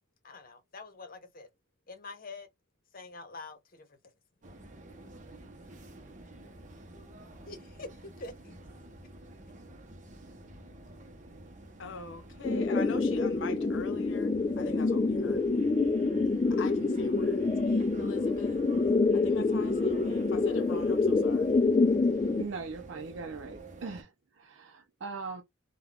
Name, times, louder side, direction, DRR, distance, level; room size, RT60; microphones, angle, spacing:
voice 1, 0.2-1.5 1.9-2.5 2.9-4.0 7.4-8.6, left 3 dB, 50° left, 0.8 m, -46 dB
sound 1, 4.4-24.0, right 1 dB, 40° right, 0.8 m, -49 dB
voice 2, 11.8-15.5 16.5-17.5 18.0-18.6 19.1-21.6, left 4 dB, 80° left, 0.6 m, -43 dB
sound 2, 12.4-22.4, left 3 dB, 25° left, 0.3 m, -27 dB
voice 3, 22.4-25.4, right 4 dB, 90° right, 0.5 m, -40 dB
3.4 x 2.2 x 2.3 m
head